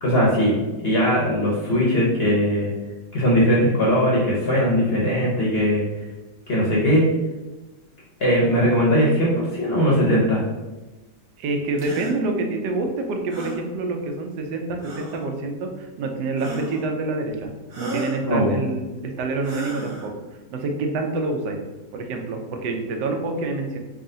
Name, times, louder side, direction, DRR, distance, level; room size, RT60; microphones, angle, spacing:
voice 1, 0.0-0.6 0.8-2.7 3.1-5.8 6.5-7.1 8.2-10.4 18.2-18.6, equal, 50° left, -5 dB, 0.8 m, -19 dB
voice 2, 11.4-20.1 20.5-21.6 21.9-23.8, right 3 dB, 80° right, 3 dB, 1.2 m, -27 dB
sound 1, 11.8-12.2 13.3-13.6 14.8-15.3 16.4-16.9 17.7-18.2 19.4-20.1, right 2 dB, 55° right, 1.0 m, -33 dB
3.7 x 2.4 x 3.7 m, 1.2 s
omnidirectional pair, 1.8 m